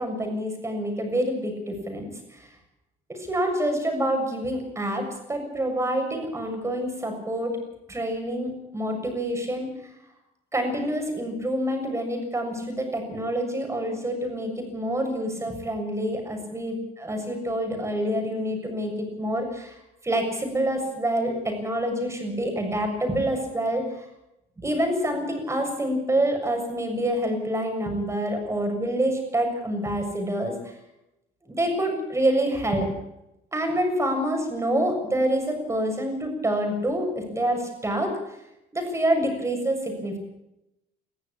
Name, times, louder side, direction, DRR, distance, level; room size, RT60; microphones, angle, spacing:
voice 1, 0.0-2.1 3.1-7.6 7.9-9.7 10.5-19.7 20.0-23.9 24.6-30.5 31.5-32.9 33.5-38.1 38.7-40.2, right 1 dB, 15° right, 4 dB, 7.1 m, -27 dB
21.0 x 14.5 x 8.6 m, 0.87 s
cardioid pair, 110°, 17 cm